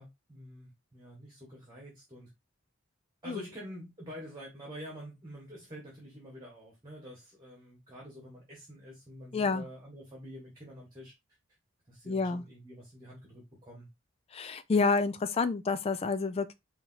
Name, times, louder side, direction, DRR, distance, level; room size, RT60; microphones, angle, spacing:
voice 1, 0.0-2.3 3.2-11.1 11.9-13.9, equal, 20° right, 1.8 m, -47 dB
voice 2, 9.3-9.7 12.1-12.4 14.3-16.5, left 4 dB, 30° left, 0.3 m, -29 dB
5.3 x 2.9 x 2.7 m
head